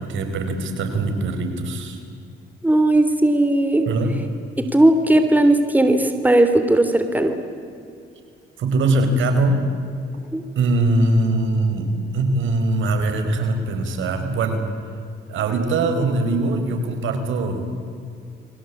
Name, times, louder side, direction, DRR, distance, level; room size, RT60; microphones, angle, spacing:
voice 1, 0.0-2.0 3.8-4.2 8.6-9.7 10.5-14.6 15.3-17.8, right 2 dB, 75° right, 6 dB, 4.9 m, -22 dB
voice 2, 2.6-3.9 4.6-7.3 10.3-10.4, right 1 dB, 10° right, 7 dB, 3.1 m, -17 dB
29.5 x 23.0 x 8.6 m, 2.4 s
cardioid pair, 90°, 20 cm